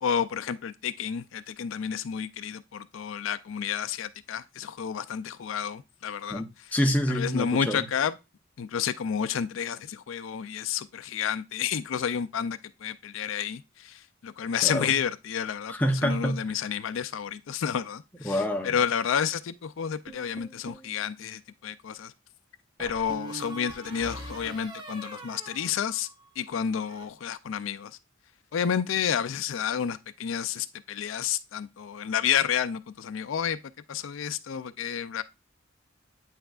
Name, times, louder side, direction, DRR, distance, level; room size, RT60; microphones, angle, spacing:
voice 1, 0.0-6.4 7.1-8.1 8.6-15.7 16.0-22.1 22.8-26.1 26.4-28.0 28.5-33.6 33.9-35.2, left 8 dB, 75° left, 0.4 m, -30 dB
voice 2, 6.7-7.9 14.6-14.9 15.7-16.6 18.2-18.7, equal, 10° left, 0.8 m, -27 dB
sound 1, 20.1-20.9 22.8-26.3 26.6-27.1, right 2 dB, 25° right, 1.0 m, -43 dB
8.8 x 5.7 x 2.4 m
head